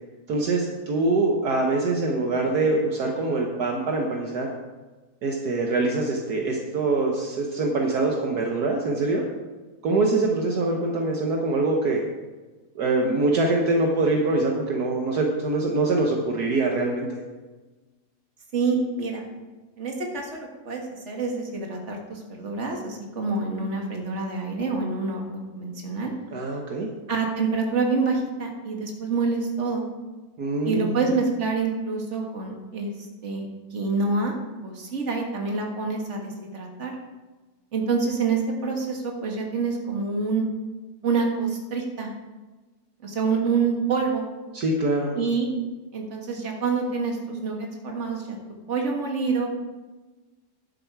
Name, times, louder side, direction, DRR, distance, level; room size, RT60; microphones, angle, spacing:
voice 1, 0.3-4.5 5.2-9.3 9.8-12.0 12.7-17.2 26.3-26.9 30.4-31.0 44.5-45.1, right 2 dB, 65° right, 1 dB, 1.6 m, -24 dB
voice 2, 18.5-19.3 19.8-26.1 27.1-29.8 30.6-34.4 34.6-37.0 37.7-40.5 41.0-42.1 43.0-44.2 45.2-45.6 45.9-48.4 48.7-49.5, right 4 dB, 45° right, 1 dB, 1.9 m, -27 dB
11.0 x 8.0 x 4.7 m, 1.2 s
omnidirectional pair, 1.8 m